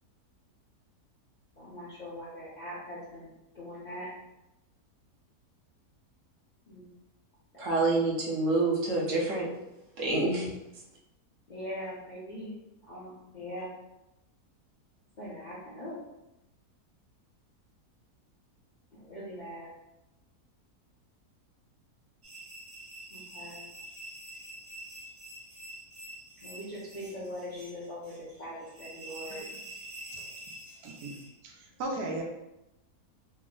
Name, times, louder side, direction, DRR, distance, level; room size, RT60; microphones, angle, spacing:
voice 1, 1.6-4.1 6.7-6.9 7.5-7.7 11.5-12.5 12.9-13.7 15.2-16.0 18.9-19.7 23.1-23.6 26.4-29.4, equal, 45° left, -8 dB, 0.6 m, -41 dB
voice 2, 7.6-9.5 10.0-10.5, right 2 dB, 60° right, -3 dB, 1.0 m, -27 dB
sound 1, 22.2-31.3, right 1 dB, 35° right, 0.7 m, -46 dB
voice 3, 30.8-32.2, right 2 dB, 80° right, 1 dB, 1.2 m, -37 dB
3.3 x 2.0 x 3.6 m, 0.92 s
omnidirectional pair, 1.6 m